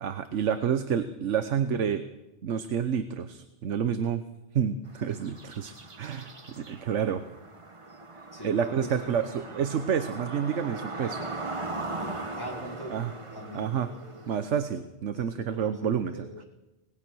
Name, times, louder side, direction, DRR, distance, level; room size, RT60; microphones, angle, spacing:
voice 1, 0.0-2.0 2.4-4.2 4.5-7.2 8.4-11.2 12.9-13.1 13.5-13.9 14.3-16.3, right 8 dB, 80° right, 10 dB, 1.2 m, -29 dB
sound 1, 4.9-14.6, right 2 dB, 25° right, 1.3 m, -40 dB
voice 2, 8.3-9.2 11.8-13.0 13.3-14.2 15.3-15.7 16.1-16.5, equal, 20° left, -2 dB, 4.8 m, -41 dB
25.5 x 20.0 x 6.3 m, 1.0 s
omnidirectional pair, 1.2 m